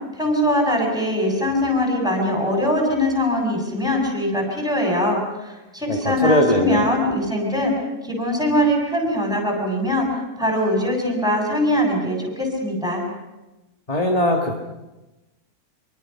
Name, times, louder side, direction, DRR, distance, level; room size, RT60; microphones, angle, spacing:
voice 1, 0.1-7.7 8.0-10.1 10.4-13.0, left 1 dB, ahead, 0 dB, 7.0 m, -22 dB
voice 2, 5.9-6.8 13.9-14.6, left 1 dB, 25° left, 1 dB, 2.0 m, -20 dB
26.0 x 24.0 x 5.8 m, 1.1 s
omnidirectional pair, 1.7 m